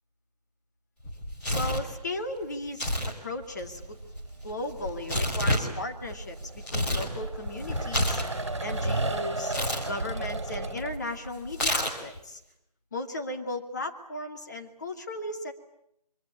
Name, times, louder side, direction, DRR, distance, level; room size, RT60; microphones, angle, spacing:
Tearing, 1.0-1.9 2.7-3.1 3.4-7.1 7.4-8.9 9.5-9.9 11.5-12.2, equal, 5° left, 2.3 m, -29 dB
voice 1, 1.5-4.0 4.4-8.2 8.6-9.5 9.8-12.4 12.9-15.5, left 2 dB, 25° left, 4 dB, 2.5 m, -36 dB
sound 1, 1.8-2.3 3.4-11.7, right 2 dB, 45° right, 2.9 m, -35 dB
27.0 x 24.5 x 8.6 m, 0.76 s
figure-of-eight pair, 160°, 21 cm